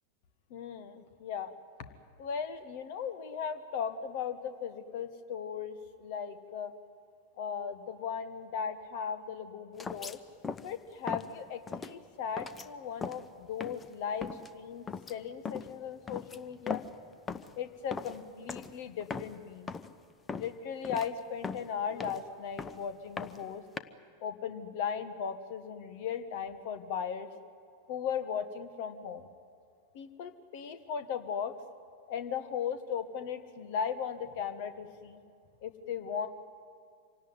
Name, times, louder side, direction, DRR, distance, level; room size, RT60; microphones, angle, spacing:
voice 1, 0.5-1.5 2.2-6.7 7.4-10.2 10.6-16.8 17.6-19.7 20.4-23.6 24.2-27.3 27.9-29.3 29.9-31.5 32.1-35.2 35.6-36.3, left 7 dB, 50° left, 10 dB, 1.5 m, -37 dB
sound 1, 9.8-10.2 10.4-10.8 11.1-11.3 11.7-11.9 12.4-12.7 13.0-13.3 13.6-13.9 14.2-14.5 14.9-15.1 15.5-15.7 16.1-17.0 17.3-17.6 17.9-18.2 18.5-18.7 19.0-19.4 19.7-19.9 20.3-20.5 20.8-21.1 21.4-22.3 22.6-22.8 23.2-23.8, left 5 dB, 15° left, 0.9 m, -39 dB
26.0 x 17.5 x 9.6 m, 2.3 s
figure-of-eight pair, 90°, 0 cm